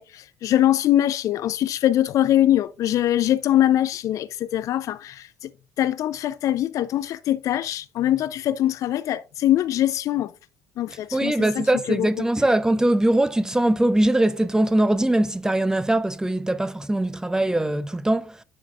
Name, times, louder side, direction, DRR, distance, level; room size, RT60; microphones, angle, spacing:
voice 1, 0.0-5.5 5.8-10.3 10.8-12.1, left 12 dB, 55° left, 0.4 m, -23 dB
voice 2, 11.1-18.4, right 1 dB, 10° right, 0.6 m, -21 dB
11.0 x 4.8 x 2.3 m
figure-of-eight pair, 50°, 7 cm